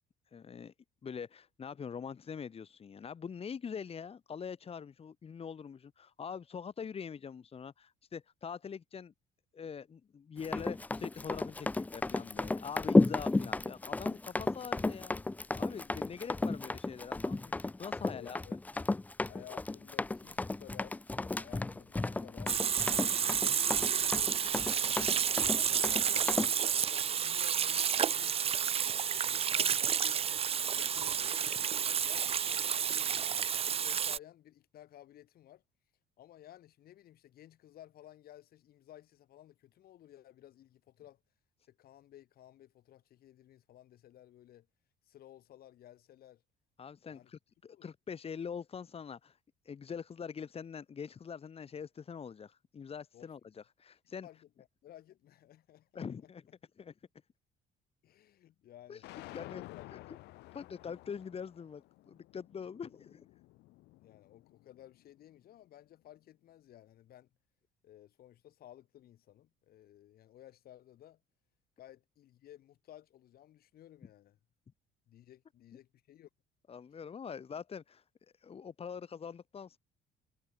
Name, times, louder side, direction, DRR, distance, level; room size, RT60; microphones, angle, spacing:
voice 1, 0.3-0.7 1.0-9.1 9.5-15.3 15.5-18.4 46.8-49.4 49.7-54.3 55.9-56.4 56.8-56.9 58.9-59.0 59.3-59.6 60.5-63.3 76.7-78.0 78.4-79.8, left 6 dB, 35° left, 2.5 m, -44 dB
Run, 10.4-26.5, left 2 dB, 10° left, 0.4 m, -33 dB
voice 2, 18.1-18.6 19.2-22.6 23.0-23.4 23.8-28.6 29.1-31.4 31.8-35.6 36.2-41.2 41.7-44.7 45.1-46.4 47.1-47.3 47.7-47.9 53.1-53.3 54.2-56.3 58.0-60.0 64.0-67.3 67.8-71.2 71.8-74.4 75.1-76.3, left 12 dB, 65° left, 3.0 m, -56 dB
Water tap faucet / Sink (filling or washing), 22.5-34.2, right 8 dB, 35° right, 0.7 m, -30 dB
sound 1, 59.0-65.2, left 20 dB, 90° left, 5.7 m, -52 dB
cardioid pair, 110°, 17 cm